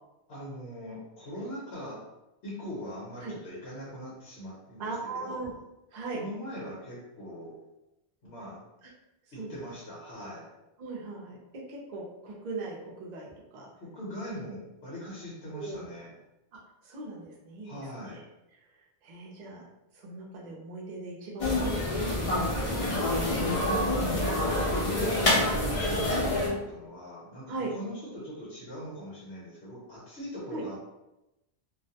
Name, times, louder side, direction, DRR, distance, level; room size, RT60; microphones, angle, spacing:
voice 1, 0.3-2.1 2.4-4.9 5.2-5.4 6.1-7.6 8.2-8.6 9.3-10.5 13.8-16.1 17.6-18.2 23.9-30.8, equal, 65° left, -5 dB, 1.0 m, -41 dB
voice 2, 4.8-5.5 5.9-6.2 8.8-8.9 9.4-9.6 10.8-13.7 15.5-15.9 16.5-18.2 19.0-19.6 19.9-24.3 27.5-27.7 30.5-30.6, right 3 dB, 50° right, -3 dB, 0.6 m, -40 dB
sound 1, 21.4-26.5, left 1 dB, 40° left, 0.6 m, -27 dB
2.4 x 2.1 x 2.7 m, 0.92 s
omnidirectional pair, 1.1 m